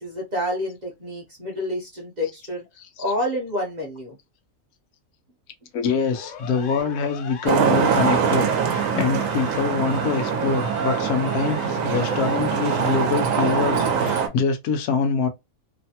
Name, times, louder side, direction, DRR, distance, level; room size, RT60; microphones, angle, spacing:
voice 1, 0.0-2.6 3.0-4.2, left 1 dB, 40° right, 0.7 m, -28 dB
voice 2, 5.7-15.3, left 5 dB, 85° left, 1.2 m, -25 dB
Siren, 6.1-14.1, left 6 dB, 65° left, 0.9 m, -38 dB
Traffic noise roadway noise, 7.5-14.3, right 7 dB, 70° right, 1.0 m, -23 dB
3.0 x 2.1 x 2.7 m
omnidirectional pair, 1.6 m